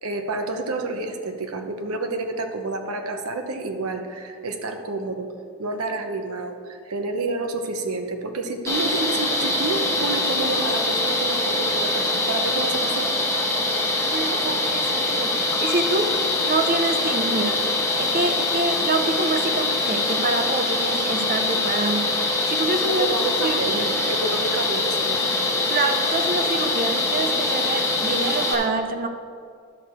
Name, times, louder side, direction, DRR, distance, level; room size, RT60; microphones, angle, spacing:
voice 1, 0.0-5.3 5.6-13.1 23.0-25.2, right 3 dB, 70° right, 5 dB, 0.9 m, -29 dB
sound 1, 8.7-28.5, left 2 dB, 15° left, 1.2 m, -23 dB
voice 2, 13.9-16.1 16.4-17.6 18.0-22.2 22.5-23.2 23.4-24.0 25.7-29.1, right 3 dB, 40° right, 7 dB, 0.6 m, -26 dB
11.0 x 6.5 x 4.4 m, 2.3 s
head